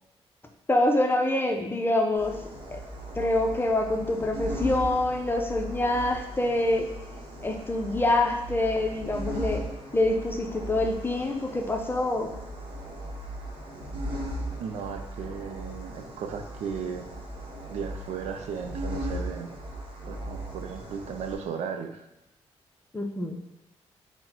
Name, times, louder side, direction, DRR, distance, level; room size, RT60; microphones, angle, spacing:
voice 1, 0.7-2.4 2.7-2.8 3.1-6.9 7.4-9.6 9.9-12.3 22.9-23.4, left 2 dB, 20° left, 3 dB, 0.6 m, -26 dB
sound 1, 2.2-21.4, right 1 dB, 50° right, 1.0 m, -38 dB
voice 2, 14.6-17.1 17.7-19.6 20.0-22.0, right 6 dB, 80° right, 7 dB, 0.4 m, -36 dB
3.8 x 2.1 x 4.3 m, 0.90 s
cardioid pair, 75°, 11 cm